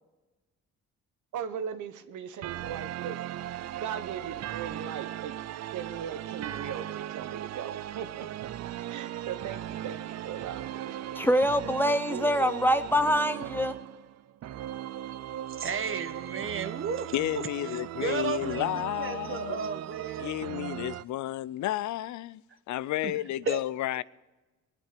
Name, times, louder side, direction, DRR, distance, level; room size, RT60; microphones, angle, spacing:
voice 1, 1.3-3.2 3.7-5.4 5.7-8.3 8.9-11.3 12.1-12.5, right 8 dB, 75° right, 1.1 m, -38 dB
Under the Boot of the Devil, 2.4-21.0, right 12 dB, 60° right, 0.5 m, -38 dB
voice 2, 11.2-13.7, equal, 5° left, 0.7 m, -25 dB
voice 3, 15.6-20.3 23.0-23.1 23.4-23.6, right 6 dB, 45° right, 1.3 m, -34 dB
voice 4, 17.1-19.7 20.2-22.4 22.7-24.0, left 14 dB, 70° left, 0.5 m, -31 dB
21.0 x 8.4 x 6.7 m
cardioid pair, 90°, 30 cm